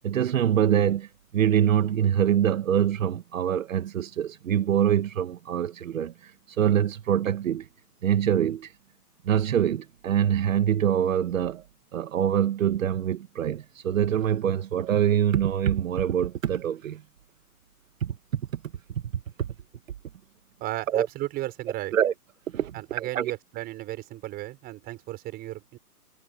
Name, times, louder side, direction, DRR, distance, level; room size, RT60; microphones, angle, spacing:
voice 1, 0.0-7.7 8.0-8.7 9.2-11.6 11.9-17.0 18.0-18.4 19.4-19.5 20.9-21.1 21.9-22.1 22.5-23.3, right 9 dB, 55° right, 1.8 m, -24 dB
voice 2, 20.6-21.9 22.7-25.8, right 17 dB, 20° right, 6.2 m, -35 dB
hypercardioid pair, 160°, 47 cm